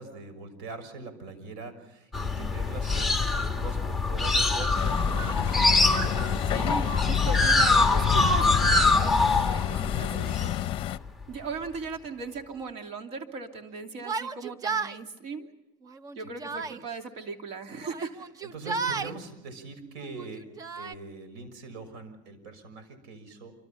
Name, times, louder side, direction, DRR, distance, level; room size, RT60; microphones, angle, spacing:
voice 1, 0.0-6.4 9.7-10.4 16.5-16.7 18.4-20.4 20.7-23.5, right 3 dB, 85° right, 11 dB, 6.2 m, -43 dB
sound 1, 2.1-11.2, left 3 dB, ahead, 1.9 m, -24 dB
Truck, 4.7-11.0, left 13 dB, 45° left, 0.8 m, -31 dB
voice 2, 6.5-10.6 11.3-15.5 16.1-18.2, right 4 dB, 60° right, 5 dB, 2.9 m, -38 dB
Yell, 14.0-15.0 15.9-16.8 17.8-19.2 20.0-20.9, right 5 dB, 30° right, 0.9 m, -33 dB
27.5 x 26.0 x 5.7 m, 0.89 s
cardioid pair, 130°, 12 cm